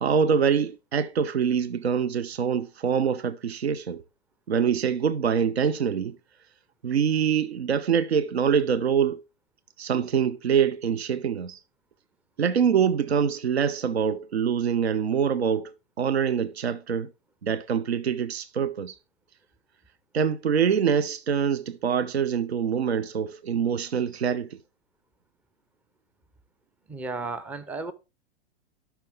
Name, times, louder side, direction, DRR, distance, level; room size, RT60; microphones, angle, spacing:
voice 1, 0.0-4.0 4.5-6.2 6.8-9.2 9.8-11.6 12.4-17.1 17.4-18.9 20.1-24.6, right 7 dB, 80° right, 0.6 m, -25 dB
voice 2, 26.9-27.9, right 3 dB, 5° right, 0.4 m, -33 dB
11.5 x 5.8 x 3.2 m
figure-of-eight pair, 100°, 31 cm